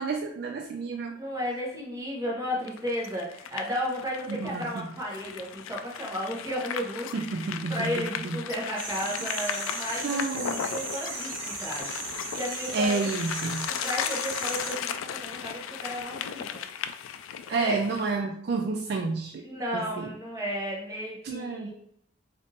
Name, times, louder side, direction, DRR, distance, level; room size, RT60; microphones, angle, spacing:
voice 1, 0.0-1.1 4.3-4.8 7.1-8.4 10.0-10.6 12.7-13.7 17.5-19.4 19.7-20.1 21.2-21.7, right 4 dB, 50° right, 3 dB, 0.3 m, -30 dB
voice 2, 1.1-10.4 10.7-12.9 13.7-16.6 17.5-17.8 19.4-21.7, equal, 15° right, -3 dB, 1.0 m, -34 dB
sound 1, 2.6-18.1, left 8 dB, 80° left, 0.3 m, -36 dB
sound 2, 8.8-14.7, right 3 dB, 75° right, 1.1 m, -37 dB
3.5 x 2.6 x 4.0 m, 0.67 s
head